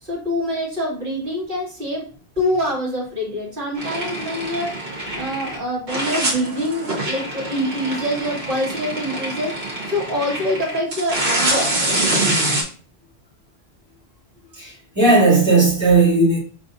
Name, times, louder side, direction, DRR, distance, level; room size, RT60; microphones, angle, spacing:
voice 1, 0.0-2.1 2.4-4.7 5.1-9.5 9.9-11.7, left 1 dB, 55° right, -4 dB, 2.0 m, -25 dB
sound 1, 3.7-5.6 5.9-12.6, right 1 dB, 75° right, 1.6 m, -25 dB
voice 2, 14.5-16.4, right 3 dB, 25° right, -7 dB, 2.4 m, -16 dB
5.0 x 3.4 x 2.6 m, 0.39 s
omnidirectional pair, 1.1 m